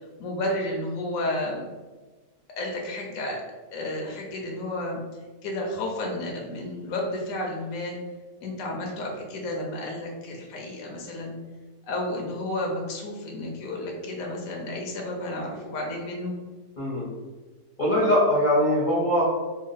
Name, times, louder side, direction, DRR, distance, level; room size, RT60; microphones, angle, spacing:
voice 1, 0.2-1.6 2.6-3.4 3.7-5.0 5.4-8.0 8.4-11.3 11.9-16.3, left 1 dB, 65° left, 0 dB, 0.9 m, -31 dB
voice 2, 17.8-19.2, left 1 dB, 40° left, -7 dB, 0.7 m, -21 dB
3.0 x 2.3 x 3.9 m, 1.3 s
omnidirectional pair, 1.8 m